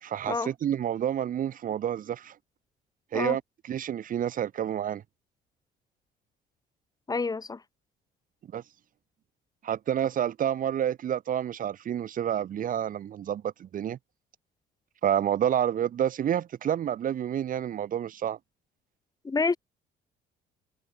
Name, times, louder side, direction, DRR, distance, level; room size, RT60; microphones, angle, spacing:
voice 1, 0.0-2.4 3.1-5.0 8.5-8.6 9.6-14.0 15.0-18.4, right 10 dB, 55° right, 3.6 m, -29 dB
voice 2, 7.1-7.6 19.2-19.6, left 4 dB, 20° left, 2.9 m, -28 dB
cardioid pair, 110°, 17 cm